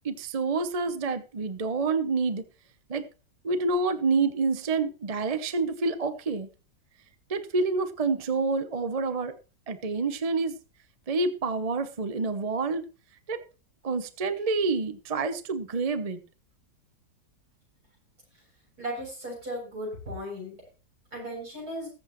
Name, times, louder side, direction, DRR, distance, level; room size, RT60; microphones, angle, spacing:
voice 1, 0.0-2.4 2.9-3.0 3.4-6.5 7.3-9.3 9.7-10.5 11.1-12.9 13.3-13.4 13.8-16.2, right 4 dB, 30° right, 10 dB, 0.7 m, -28 dB
voice 2, 18.8-20.5 21.1-21.9, equal, 60° right, -2 dB, 8.1 m, -36 dB
21.0 x 8.0 x 3.1 m, 0.33 s
omnidirectional pair, 1.8 m